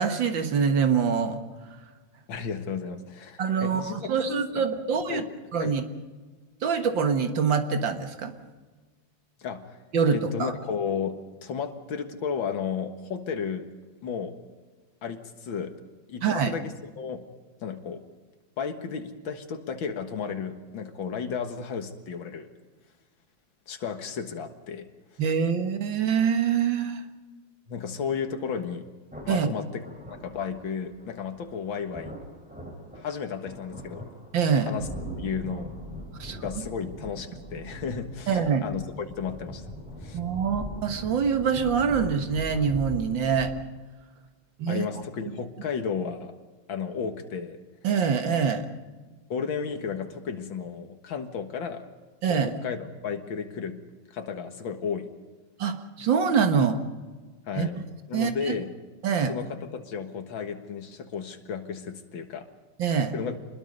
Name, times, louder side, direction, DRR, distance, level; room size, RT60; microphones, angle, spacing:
voice 1, 0.0-1.4 3.4-5.2 5.5-5.8 6.6-8.3 9.9-10.5 16.2-16.5 25.2-27.0 29.3-29.5 34.3-34.7 36.2-36.4 38.3-38.6 40.1-43.5 44.6-44.9 47.8-48.7 52.2-52.5 55.6-56.8 57.6-57.7 58.1-58.5 59.0-59.3 62.8-63.1, right 6 dB, 75° right, 7 dB, 2.2 m, -25 dB
voice 2, 2.3-4.0 4.5-4.7 5.1-5.2 5.6-5.7 9.4-9.8 10.1-13.7 14.0-14.3 15.0-15.7 16.1-17.2 17.6-18.0 18.6-22.5 23.7-24.9 27.7-28.9 29.3-29.8 30.1-32.1 33.0-34.0 34.7-34.9 35.2-35.7 36.4-38.8 39.2-39.6 40.0-40.2 44.7-46.3 46.7-47.6 49.3-51.8 52.3-53.8 54.1-55.1 57.5-57.8 58.1-58.7 59.3-62.5 63.1-63.4, left 6 dB, 90° left, 6 dB, 2.3 m, -33 dB
sound 1, 29.1-43.6, equal, 5° right, 3.9 m, -41 dB
27.0 x 21.0 x 5.4 m, 1.3 s
omnidirectional pair, 2.1 m